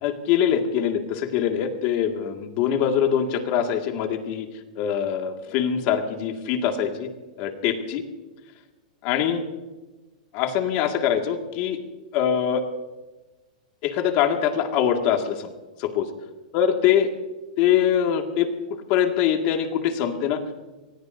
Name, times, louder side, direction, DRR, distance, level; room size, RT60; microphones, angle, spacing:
voice 1, 0.0-4.5 4.8-7.1 7.4-8.0 9.0-9.4 10.3-11.8 12.1-12.6 13.8-15.5 15.8-16.1 16.5-17.1 17.6-20.5, left 9 dB, 40° left, 4 dB, 2.0 m, -23 dB
27.5 x 19.5 x 2.7 m, 1.1 s
hypercardioid pair, 155°, 4 cm